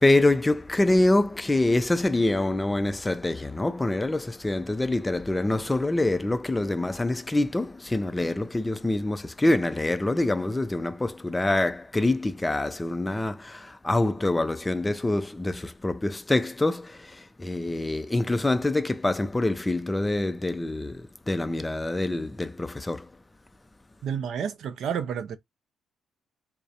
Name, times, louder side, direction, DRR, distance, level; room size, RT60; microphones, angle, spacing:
voice 1, 0.0-23.1, left 2 dB, 15° left, 0.3 m, -25 dB
voice 2, 24.0-25.4, right 7 dB, 70° right, 0.4 m, -30 dB
2.4 x 2.0 x 2.7 m
cardioid pair, 90°, 0 cm